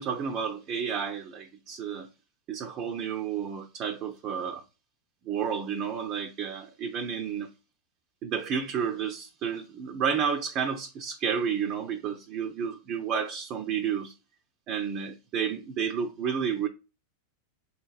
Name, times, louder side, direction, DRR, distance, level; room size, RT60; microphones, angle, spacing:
voice 1, 0.0-2.1 2.5-4.6 5.3-7.5 8.2-14.1 14.7-16.7, right 7 dB, 40° right, 0.5 m, -31 dB
4.1 x 3.0 x 2.3 m
hypercardioid pair, 100°, 0 cm